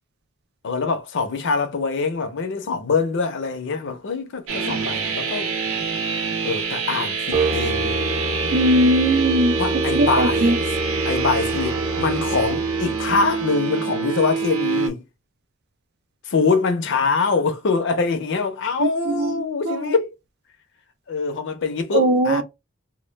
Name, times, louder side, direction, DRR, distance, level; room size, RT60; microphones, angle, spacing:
voice 1, 0.6-5.5 6.4-8.0 9.6-10.6 11.0-15.0 16.3-20.1 21.1-22.4, left 4 dB, 55° left, 0.5 m, -24 dB
sound 1, 4.5-14.9, right 5 dB, 70° right, 0.8 m, -26 dB
sound 2, 7.3-13.4, right 1 dB, 35° right, 0.7 m, -27 dB
voice 2, 8.5-9.6 9.9-10.6 18.8-19.3 19.7-19.9 21.9-22.4, right 1 dB, 50° right, 0.3 m, -19 dB
2.2 x 2.0 x 3.1 m
head